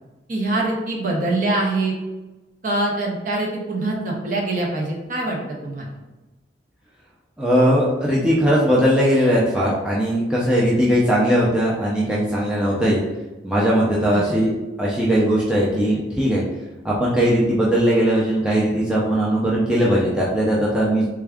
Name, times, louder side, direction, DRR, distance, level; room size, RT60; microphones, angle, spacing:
voice 1, 0.3-1.9 2.6-5.9 14.1-14.3, right 2 dB, 45° right, -2 dB, 0.7 m, -24 dB
voice 2, 7.4-13.0 13.4-14.5 14.8-16.4 16.8-21.1, equal, 5° right, -6 dB, 0.4 m, -19 dB
3.4 x 2.3 x 3.4 m, 1.1 s
head